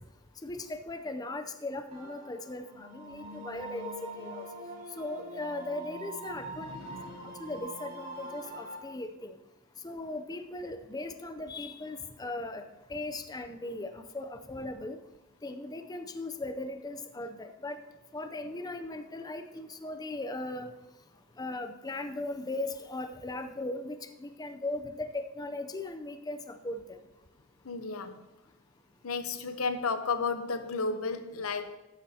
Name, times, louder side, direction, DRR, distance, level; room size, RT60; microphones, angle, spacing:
voice 1, 0.4-4.5 5.0-6.7 7.4-9.3 9.8-12.6 12.9-15.0 15.4-17.8 18.1-20.7 21.4-26.8, left 2 dB, 20° left, 0.5 m, -38 dB
sound 1, 1.9-8.8, right 1 dB, 30° right, 2.7 m, -44 dB
voice 2, 6.5-7.5 27.6-28.2 29.0-31.8, left 4 dB, 80° left, 0.8 m, -33 dB
13.5 x 9.9 x 2.8 m
head